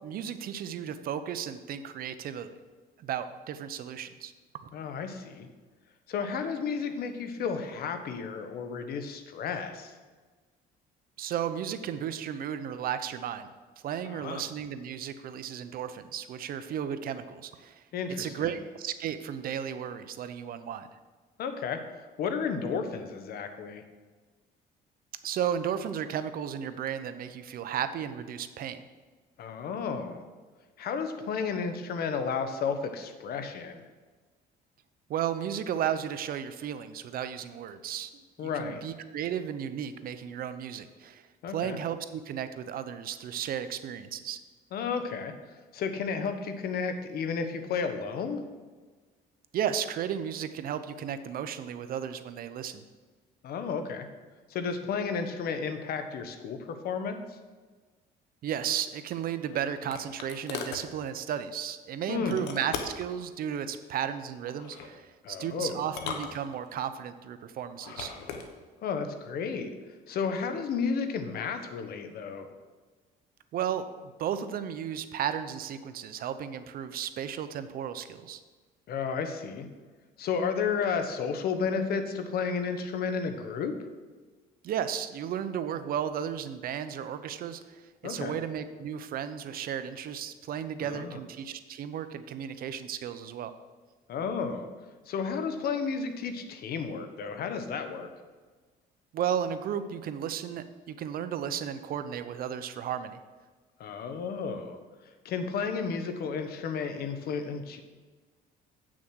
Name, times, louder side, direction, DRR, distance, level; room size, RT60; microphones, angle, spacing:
voice 1, 0.0-2.5 3.0-4.3 11.2-13.5 13.8-17.8 18.2-20.9 25.2-28.8 35.1-38.1 38.4-44.4 49.5-52.8 58.4-68.1 73.5-78.4 84.6-93.5 99.1-103.2, right 9 dB, 60° right, 11 dB, 0.7 m, -34 dB
voice 2, 4.7-5.5 6.1-9.9 14.0-14.4 17.9-18.5 21.4-21.8 22.2-23.8 29.4-30.3 30.8-33.8 38.4-38.8 41.4-41.8 44.7-45.3 45.7-48.4 53.4-54.1 54.5-57.4 62.1-62.4 65.2-65.8 68.8-69.7 70.1-72.5 78.9-79.7 80.2-83.8 88.0-88.3 90.8-91.2 94.1-94.7 95.1-98.1 103.8-104.8 105.2-107.8, left 5 dB, 65° left, 8 dB, 1.1 m, -32 dB
sound 1, 59.1-60.9 62.3-63.1 64.5-64.9 65.8-66.9 67.7-68.5, left 6 dB, 90° left, 1.2 m, -39 dB
8.4 x 6.2 x 6.3 m, 1.4 s
cardioid pair, 110°, 17 cm